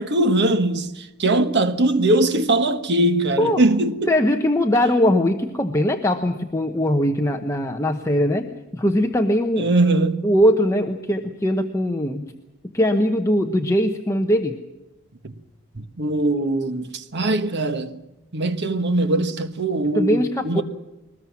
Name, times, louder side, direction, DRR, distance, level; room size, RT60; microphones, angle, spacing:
voice 1, 0.0-4.1 9.6-10.3 15.2-15.3 15.7-18.0 18.3-20.6, right 2 dB, 55° right, 1.4 m, -21 dB
voice 2, 4.1-9.7 10.2-12.3 12.7-14.6 19.9-20.6, equal, 15° left, 1.0 m, -21 dB
22.5 x 20.0 x 7.3 m
head